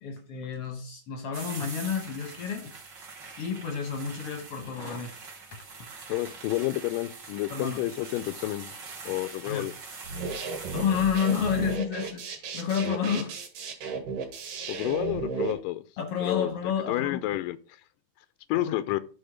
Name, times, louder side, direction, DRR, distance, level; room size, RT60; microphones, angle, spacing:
voice 1, 0.0-2.7 3.4-5.1 7.5-7.8 9.4-9.7 10.7-13.4 16.0-17.2 18.5-18.7, left 7 dB, 60° left, 1.6 m, -30 dB
sound 1, 1.3-11.8, right 4 dB, 40° right, 2.0 m, -44 dB
voice 2, 6.1-8.7 9.1-9.7 14.7-15.8 16.2-16.5 16.9-17.6 18.5-19.0, left 16 dB, 85° left, 2.2 m, -30 dB
sound 2, 10.0-15.5, right 4 dB, 75° right, 3.3 m, -34 dB
12.5 x 4.3 x 5.0 m
omnidirectional pair, 3.9 m